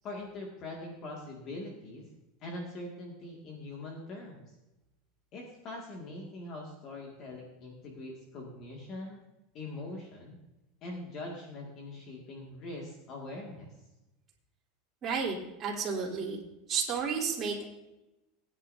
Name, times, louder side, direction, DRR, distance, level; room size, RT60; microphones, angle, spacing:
voice 1, 0.0-2.1 2.4-4.5 5.3-9.2 9.5-10.4 10.8-13.7, left 2 dB, 35° left, -1 dB, 2.1 m, -42 dB
voice 2, 15.0-16.4 16.7-17.6, right 6 dB, 25° right, -6 dB, 3.3 m, -32 dB
19.5 x 9.8 x 2.7 m, 0.98 s
supercardioid pair, 160°, 0 cm